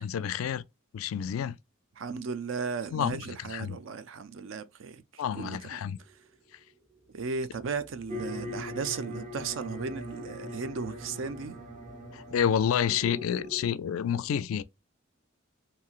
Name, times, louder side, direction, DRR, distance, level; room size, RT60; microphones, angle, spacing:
voice 1, 0.0-0.6 0.9-1.6 2.9-3.2 3.5-3.8 5.2-6.0 12.1-14.6, left 8 dB, 80° left, 0.3 m, -29 dB
voice 2, 2.0-6.2 7.1-11.6, right 5 dB, 65° right, 0.4 m, -36 dB
sound 1, 5.3-13.5, right 2 dB, ahead, 0.5 m, -55 dB
sound 2, 8.1-13.7, left 1 dB, 35° right, 0.8 m, -41 dB
3.0 x 2.7 x 2.4 m
head